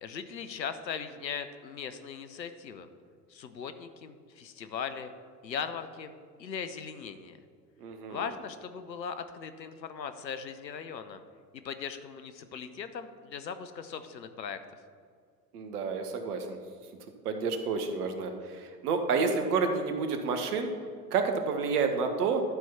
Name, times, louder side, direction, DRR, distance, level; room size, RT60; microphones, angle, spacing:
voice 1, 0.0-2.9 3.3-5.1 5.4-6.1 6.4-7.4 8.1-11.2 11.5-14.6, left 7 dB, 85° left, 10 dB, 0.8 m, -39 dB
voice 2, 7.8-8.2 15.5-16.6 17.2-20.7 21.1-22.4, right 5 dB, 65° right, 6 dB, 1.3 m, -29 dB
11.5 x 4.6 x 5.6 m, 2.2 s
figure-of-eight pair, 80°, 50 cm